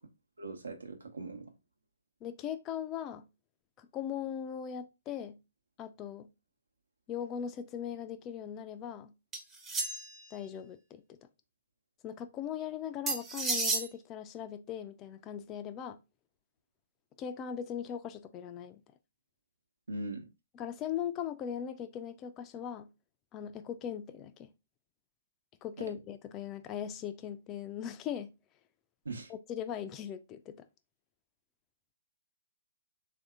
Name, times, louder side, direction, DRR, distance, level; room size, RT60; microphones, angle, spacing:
voice 1, 0.4-1.5 19.9-20.3 25.8-25.9 29.0-29.3, right 2 dB, 85° right, 1.0 m, -40 dB
voice 2, 2.2-3.3 3.8-5.4 5.8-6.3 7.1-9.1 10.3-11.2 12.0-16.0 17.2-18.8 20.5-22.9 23.3-24.5 25.6-28.3 29.3-30.7, left 9 dB, 25° left, 0.4 m, -39 dB
sound 1, 9.3-10.2 13.1-13.9, right 3 dB, 15° right, 0.6 m, -32 dB
3.3 x 2.6 x 3.6 m
figure-of-eight pair, 135°, 0 cm